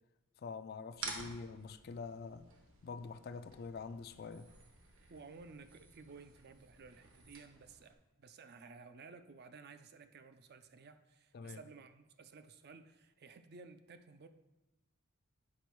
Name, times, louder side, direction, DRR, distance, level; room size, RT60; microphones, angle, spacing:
voice 1, 0.4-2.5 2.8-4.5 11.3-11.6, left 4 dB, 45° left, 0.3 m, -45 dB
sound 1, 0.9-7.9, right 3 dB, 60° right, 1.1 m, -51 dB
voice 2, 5.1-14.3, right 4 dB, 45° right, 0.5 m, -55 dB
8.6 x 5.1 x 4.6 m
head